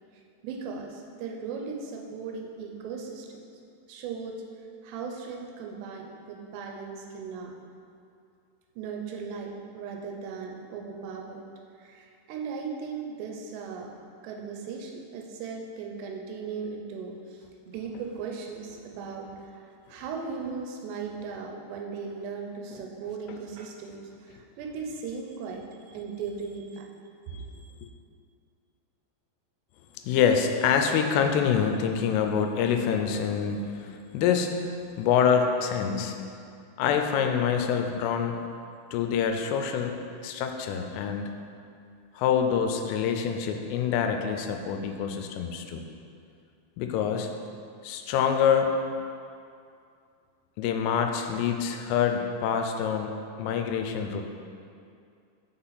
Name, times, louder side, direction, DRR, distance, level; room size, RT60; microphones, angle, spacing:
voice 1, 0.4-3.3 3.9-4.4 4.8-7.6 8.8-11.4 11.8-13.9 14.2-17.4 17.7-19.3 19.9-24.0 24.2-26.9 27.3-27.4, right 5 dB, 90° right, 1 dB, 2.9 m, -37 dB
voice 2, 30.0-34.5 35.0-36.2 36.8-38.4 38.9-41.3 42.2-45.8 46.8-47.3 47.8-48.7 50.6-54.2, left 7 dB, 85° left, 5 dB, 2.7 m, -26 dB
6.2 x 5.7 x 4.0 m, 2.4 s
omnidirectional pair, 4.8 m